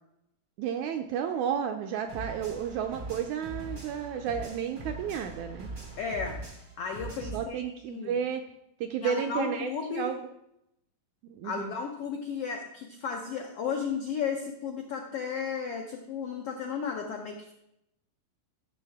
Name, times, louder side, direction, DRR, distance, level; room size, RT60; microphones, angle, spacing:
voice 1, 0.6-5.7 7.3-8.4 8.8-10.2 11.3-11.7, right 8 dB, 80° right, 6 dB, 1.7 m, -32 dB
sound 1, 2.1-7.4, right 2 dB, 45° right, 0.6 m, -41 dB
voice 2, 6.0-6.4 6.8-8.2 9.0-10.1 11.4-17.5, left 6 dB, 80° left, 2 dB, 1.3 m, -34 dB
13.5 x 6.4 x 3.5 m, 0.81 s
omnidirectional pair, 3.9 m